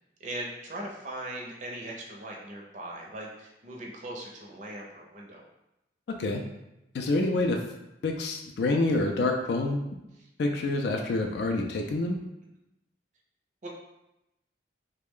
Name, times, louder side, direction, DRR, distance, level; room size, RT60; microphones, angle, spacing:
voice 1, 0.2-5.4 13.6-13.7, right 1 dB, 40° right, -2 dB, 0.5 m, -39 dB
voice 2, 6.9-7.6 8.0-9.8 10.4-12.2, left 2 dB, 60° left, 3 dB, 0.3 m, -27 dB
3.2 x 2.1 x 3.6 m, 0.89 s
head